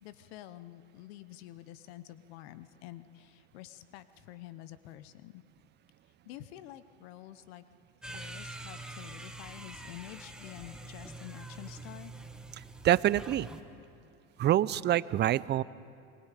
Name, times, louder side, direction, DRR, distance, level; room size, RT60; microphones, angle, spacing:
voice 1, 0.0-5.4 6.2-7.6 8.1-12.1, left 14 dB, 75° left, 14 dB, 0.9 m, -48 dB
sound 1, 8.0-13.6, right 2 dB, ahead, 1.3 m, -45 dB
voice 2, 12.6-13.5 14.4-15.6, right 12 dB, 35° right, 19 dB, 0.5 m, -26 dB
28.0 x 21.5 x 5.0 m, 2.4 s
supercardioid pair, 95°, 32 cm